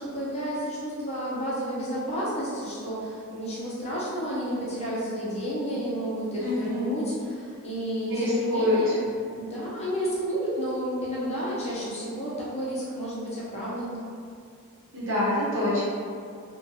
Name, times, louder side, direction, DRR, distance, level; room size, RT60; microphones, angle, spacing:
voice 1, 0.0-9.1 9.3-14.0, equal, 30° left, -8 dB, 0.6 m, -31 dB
voice 2, 6.4-7.0 8.1-8.8 14.9-15.8, left 1 dB, 60° right, -9 dB, 0.9 m, -26 dB
2.4 x 2.2 x 2.7 m, 2.2 s
head